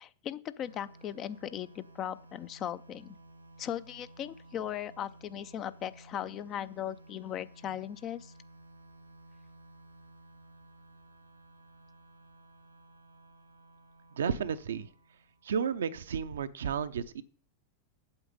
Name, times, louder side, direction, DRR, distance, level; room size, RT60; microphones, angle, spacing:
voice 1, 0.0-3.2 3.6-8.3, left 10 dB, 35° left, 14 dB, 0.5 m, -38 dB
sound 1, 0.6-16.0, right 1 dB, 85° right, 1.4 m, -56 dB
voice 2, 14.2-14.9 15.4-17.2, right 7 dB, 65° right, 11 dB, 0.6 m, -32 dB
8.1 x 7.7 x 5.3 m, 0.44 s
figure-of-eight pair, 90°, 0 cm